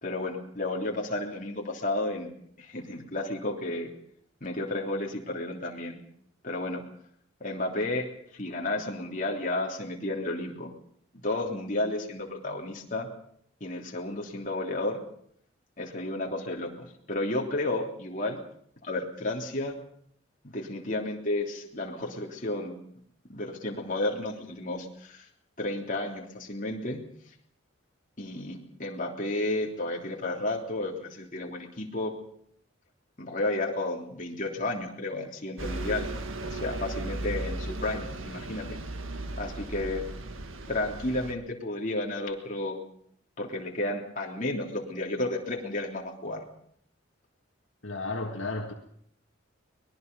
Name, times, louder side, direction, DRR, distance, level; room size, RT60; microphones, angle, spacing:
voice 1, 0.0-2.3 2.6-3.9 4.4-6.0 6.4-6.8 7.4-8.1 8.3-10.7 11.1-13.1 13.6-15.0 15.8-18.4 18.8-19.7 20.4-22.8 23.3-25.2 25.6-27.0 28.2-32.1 33.2-36.1 36.4-38.7 39.4-40.0 40.7-42.8 43.4-46.4, left 2 dB, 40° left, 3.3 m, -32 dB
Bus, 35.6-41.3, right 2 dB, 80° right, 1.7 m, -36 dB
voice 2, 47.8-48.7, left 3 dB, 70° left, 2.1 m, -33 dB
24.0 x 20.5 x 5.4 m
head